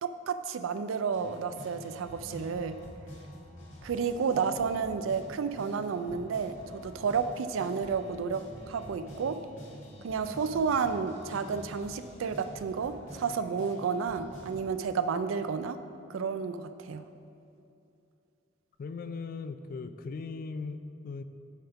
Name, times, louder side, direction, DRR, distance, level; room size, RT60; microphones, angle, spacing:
voice 1, 0.0-2.8 3.8-9.4 10.0-15.8 16.1-17.0, right 5 dB, 85° right, 10 dB, 0.4 m, -31 dB
sound 1, 1.1-14.6, equal, 85° left, 1.6 m, -48 dB
voice 2, 18.8-21.2, left 4 dB, 45° left, 10 dB, 0.3 m, -38 dB
9.0 x 3.5 x 5.7 m, 2.7 s
head